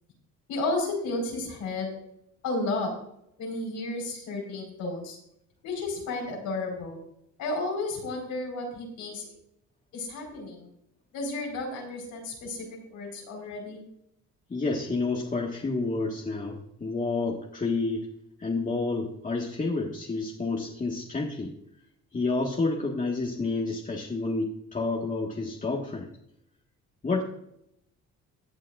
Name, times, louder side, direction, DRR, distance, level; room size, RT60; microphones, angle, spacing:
voice 1, 0.5-1.9 2.4-2.9 3.4-5.2 5.6-7.0 7.4-9.3 9.9-10.7 11.1-12.7 12.9-13.8, left 2 dB, 85° left, 1 dB, 4.5 m, -32 dB
voice 2, 14.5-18.1 18.4-21.5 22.1-26.1 27.0-27.2, left 3 dB, 25° left, -2 dB, 1.6 m, -29 dB
16.5 x 9.2 x 2.5 m, 0.76 s
cardioid pair, 90°, 30 cm